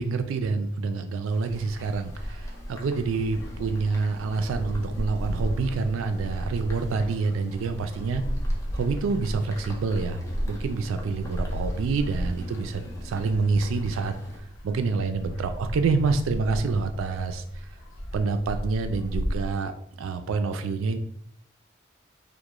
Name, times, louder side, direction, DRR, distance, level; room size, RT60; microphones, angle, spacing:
voice 1, 0.0-8.2 8.7-10.2 10.5-14.1 14.6-17.4 18.1-19.7 20.0-21.0, right 4 dB, 80° right, 8 dB, 0.3 m, -27 dB
sound 1, 1.2-14.4, left 1 dB, 15° left, 0.3 m, -48 dB
sound 2, 1.5-19.5, equal, 80° left, 0.5 m, -35 dB
2.4 x 2.1 x 2.9 m, 0.71 s
head